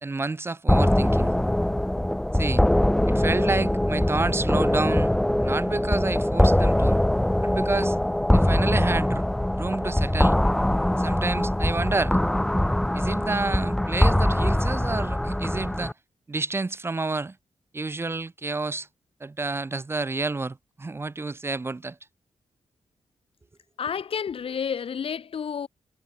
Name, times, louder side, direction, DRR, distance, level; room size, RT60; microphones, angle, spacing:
voice 1, 0.0-1.3 2.3-2.6 3.1-5.1 5.4-7.0 7.4-8.0 8.3-9.2 9.5-10.3 11.0-12.2 12.9-15.9 16.3-17.4 17.7-18.9 19.2-22.0, right 3 dB, 20° right, 1.3 m, -29 dB
sound 1, 0.7-15.9, left 1 dB, 5° left, 0.3 m, -22 dB
voice 2, 23.8-25.7, left 7 dB, 55° left, 1.3 m, -30 dB
wide cardioid pair, 175°, 12 cm